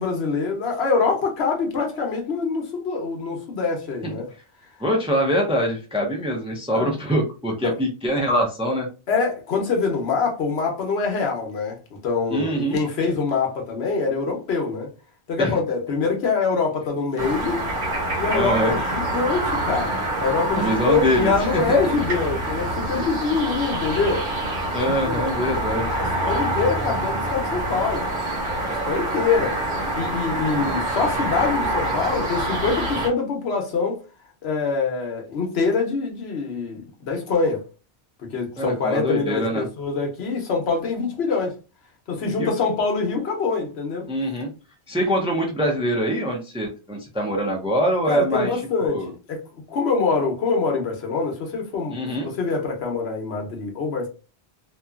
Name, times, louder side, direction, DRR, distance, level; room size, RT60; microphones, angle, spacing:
voice 1, 0.0-4.3 6.7-6.9 7.6-7.7 9.1-14.9 15.3-17.7 18.2-24.3 24.9-25.2 25.9-28.1 28.7-29.6 30.0-34.0 34.4-37.6 38.2-41.5 42.1-44.1 48.1-49.4 49.7-54.1, left 4 dB, 75° left, 1.0 m, -24 dB
voice 2, 4.8-8.9 12.3-12.8 15.4-15.6 18.3-18.8 20.5-21.9 23.0-23.1 24.7-25.8 38.6-39.6 42.4-42.5 44.1-44.5 44.9-48.6 48.9-49.1 51.9-52.3, equal, 10° right, 0.4 m, -24 dB
sound 1, 17.2-33.1, right 1 dB, 50° right, 0.9 m, -26 dB
2.8 x 2.2 x 2.3 m
omnidirectional pair, 1.1 m